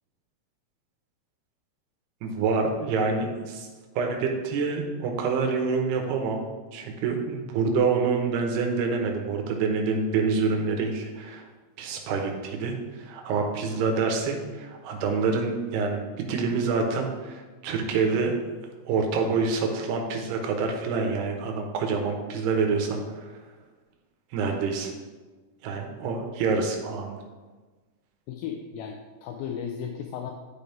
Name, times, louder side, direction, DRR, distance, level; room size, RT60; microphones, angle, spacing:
voice 1, 2.2-3.7 4.0-11.4 11.8-18.3 18.9-23.3 24.3-24.9 25.6-27.2, right 4 dB, 80° right, 3 dB, 3.0 m, -27 dB
voice 2, 28.3-30.3, left 8 dB, 85° left, 4 dB, 2.1 m, -35 dB
12.0 x 4.9 x 3.5 m, 1.3 s
omnidirectional pair, 4.6 m